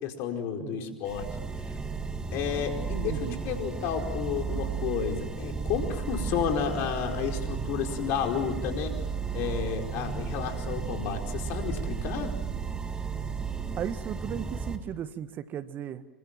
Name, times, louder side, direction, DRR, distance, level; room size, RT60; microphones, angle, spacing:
voice 1, 0.0-1.3 1.6-1.7 2.3-8.9 9.3-12.3, left 8 dB, 55° left, 4 dB, 4.8 m, -31 dB
voice 2, 0.6-1.0 3.0-3.4 13.8-16.0, right 10 dB, 40° right, 12 dB, 1.5 m, -36 dB
sound 1, 1.1-14.8, right 5 dB, 15° right, 2.6 m, -34 dB
27.5 x 24.5 x 7.5 m, 1.1 s
hypercardioid pair, 85°, 5 cm